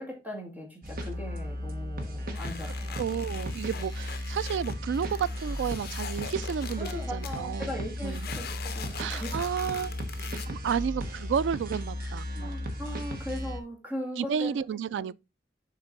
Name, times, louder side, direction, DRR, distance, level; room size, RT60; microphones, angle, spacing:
voice 1, 0.0-3.3 3.7-3.8 6.8-9.4 12.0-14.7 15.0-15.1, equal, 10° right, 2.3 m, -39 dB
sound 1, 0.8-13.6, equal, 55° right, 1.2 m, -35 dB
sound 2, 2.3-7.4 8.1-10.5, left 8 dB, 60° left, 0.8 m, -43 dB
voice 2, 3.0-7.7 8.0-8.2 9.0-10.0 10.5-12.6 14.2-15.1, right 7 dB, 85° right, 0.3 m, -31 dB
6.9 x 4.4 x 4.0 m
head